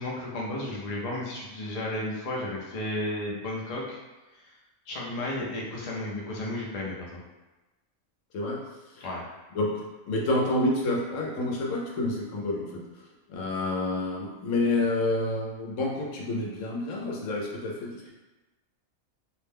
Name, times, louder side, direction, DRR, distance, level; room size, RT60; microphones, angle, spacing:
voice 1, 0.0-4.0 4.3-4.5 4.9-7.2 9.0-9.2, left 1 dB, 55° left, -3 dB, 0.4 m, -33 dB
voice 2, 9.5-12.8 13.3-18.1, left 2 dB, 75° left, -2 dB, 1.0 m, -28 dB
2.5 x 2.1 x 3.3 m, 1.1 s
omnidirectional pair, 1.4 m